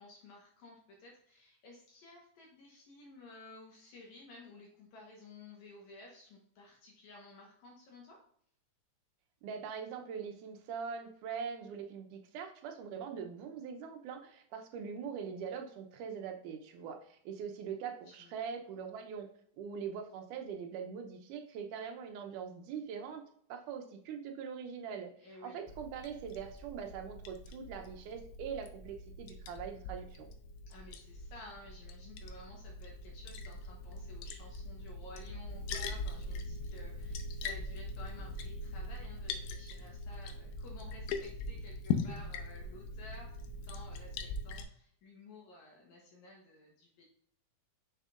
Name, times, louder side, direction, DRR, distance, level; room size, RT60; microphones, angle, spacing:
voice 1, 0.0-8.2 18.1-18.4 18.7-18.8 25.2-25.7 30.7-47.1, left 2 dB, 70° left, -2 dB, 2.4 m, -54 dB
voice 2, 9.4-19.3 19.6-23.2 23.5-25.1 25.4-30.3, right 6 dB, 90° right, 5 dB, 2.3 m, -42 dB
Liquid, 25.7-44.6, left 3 dB, 85° left, 2.1 m, -41 dB
6.6 x 6.4 x 2.5 m, 0.64 s
omnidirectional pair, 3.5 m